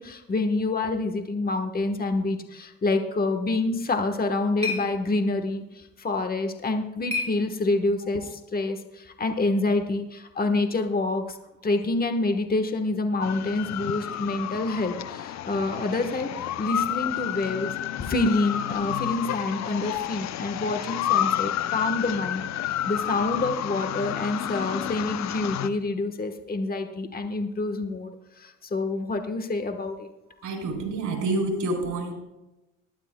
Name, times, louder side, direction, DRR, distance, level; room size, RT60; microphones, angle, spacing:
voice 1, 0.0-11.4 11.6-17.7 18.1-30.1, left 2 dB, 30° left, 6 dB, 1.2 m, -27 dB
sound 1, 3.9-8.1, left 4 dB, 20° right, 3.3 m, -37 dB
sound 2, 13.2-25.7, left 11 dB, 65° left, 0.6 m, -30 dB
voice 2, 30.4-32.1, right 2 dB, 70° right, 1 dB, 3.9 m, -28 dB
20.0 x 12.0 x 2.2 m, 0.97 s
cardioid pair, 90°, 30 cm